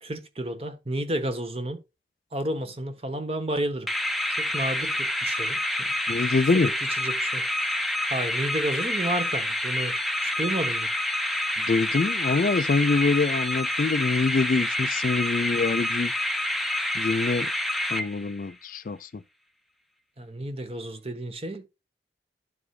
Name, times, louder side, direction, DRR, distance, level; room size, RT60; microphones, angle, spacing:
voice 1, 0.0-1.8 2.3-3.9 4.5-6.3 6.5-7.5 8.1-10.9 20.2-21.7, right 1 dB, 35° right, 1.1 m, -31 dB
sound 1, 3.9-18.5, left 1 dB, ahead, 0.7 m, -28 dB
voice 2, 6.1-6.7 11.7-16.1 16.9-17.5 17.9-19.2, left 4 dB, 50° left, 0.4 m, -25 dB
12.5 x 4.8 x 2.4 m
head